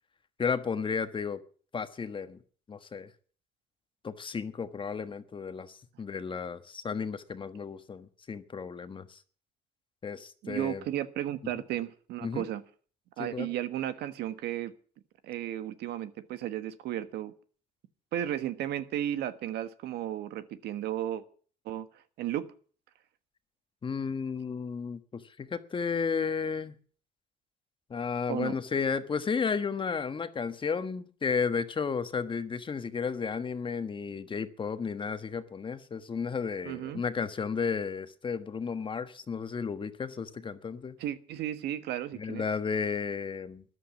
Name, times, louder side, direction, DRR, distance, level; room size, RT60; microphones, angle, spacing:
voice 1, 0.4-1.4 1.7-2.4 2.7-3.1 4.0-9.2 10.0-10.8 12.2-12.4 13.2-13.5 23.8-26.7 27.9-41.0 42.1-43.6, left 5 dB, 30° left, 1.3 m, -33 dB
voice 2, 10.4-12.6 13.2-14.7 15.2-17.3 18.1-21.2 21.6-21.9 22.2-22.5 28.3-28.6 36.6-37.0 41.0-42.4, right 12 dB, 80° right, 1.3 m, -34 dB
13.5 x 11.0 x 7.2 m
cardioid pair, 110°, 17 cm